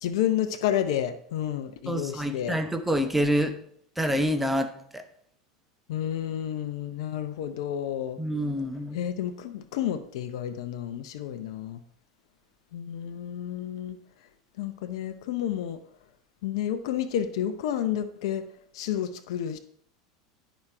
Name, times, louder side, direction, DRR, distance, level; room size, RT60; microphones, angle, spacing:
voice 1, 0.0-2.6 5.9-8.2 8.9-11.8 12.7-14.0 14.6-15.8 16.4-18.4 18.7-19.6, left 10 dB, 65° left, 10 dB, 0.7 m, -30 dB
voice 2, 1.9-3.6 4.0-5.0 8.2-9.0, equal, 5° right, 8 dB, 1.0 m, -27 dB
9.5 x 5.1 x 4.5 m, 0.62 s
hypercardioid pair, 90°, 3 cm